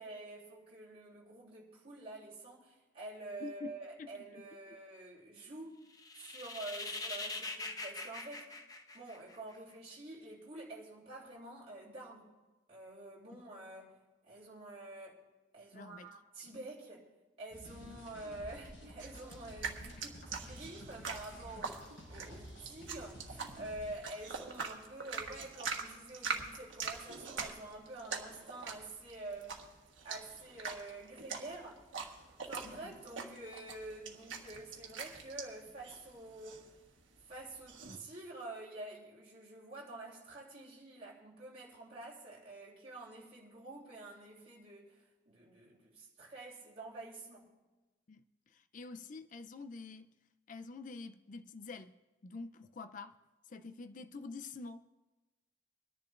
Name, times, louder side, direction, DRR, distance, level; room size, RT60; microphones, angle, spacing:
voice 1, 0.0-5.7 6.1-8.5 8.9-12.3 12.7-14.0 14.3-15.2 15.5-17.1 17.4-29.6 30.0-31.8 32.5-36.7 37.3-44.9 45.2-47.5, right 2 dB, 30° right, -6 dB, 3.0 m, -48 dB
voice 2, 3.4-3.7 4.0-4.4 13.3-13.4 15.7-16.1 16.4-16.6 17.7-18.0 19.8-20.1 32.6-33.0 48.1-50.1 50.5-51.9 52.2-53.1 53.5-54.9, left 3 dB, 40° left, 10 dB, 0.4 m, -47 dB
sound 1, 5.9-9.5, left 3 dB, 20° left, 0.8 m, -42 dB
sound 2, 17.5-24.0, equal, 85° left, 5.1 m, -51 dB
sound 3, 19.0-38.0, right 5 dB, 80° right, 1.4 m, -44 dB
26.0 x 10.5 x 2.5 m, 1.2 s
head